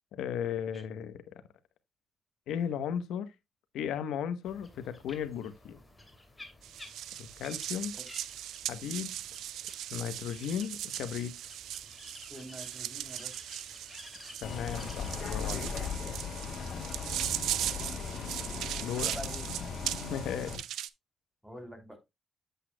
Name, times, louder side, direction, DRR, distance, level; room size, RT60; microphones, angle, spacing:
voice 1, 0.1-1.4 2.5-3.3 3.7-5.8 7.2-8.0 8.7-9.2 9.9-11.3 14.4-15.7 18.8-19.2 20.1-20.5, left 8 dB, 85° left, 1.0 m, -35 dB
sound 1, 4.4-15.2, left 1 dB, 10° left, 2.6 m, -53 dB
sound 2, 6.6-20.9, right 12 dB, 80° right, 0.5 m, -39 dB
voice 2, 12.3-13.4 19.1-19.5 21.4-22.0, equal, 5° right, 3.1 m, -45 dB
Bus, 14.4-20.6, left 6 dB, 55° left, 2.1 m, -38 dB
8.2 x 8.0 x 2.2 m
cardioid pair, 90°, 0 cm